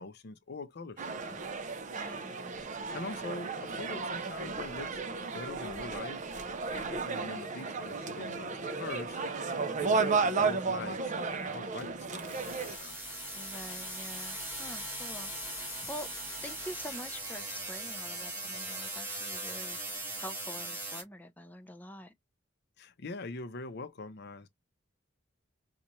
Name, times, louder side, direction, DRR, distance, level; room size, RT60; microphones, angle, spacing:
voice 1, 0.0-1.4 2.9-6.2 6.6-9.2 9.8-13.0 22.8-24.5, left 3 dB, 55° left, 0.6 m, -43 dB
sound 1, 1.0-12.8, right 4 dB, 40° right, 0.6 m, -34 dB
voice 2, 1.9-2.6 13.3-16.1 16.4-19.8 20.2-22.1, equal, 10° left, 0.6 m, -46 dB
sound 2, 12.2-21.0, right 1 dB, 10° right, 1.7 m, -39 dB
4.1 x 2.3 x 3.0 m
head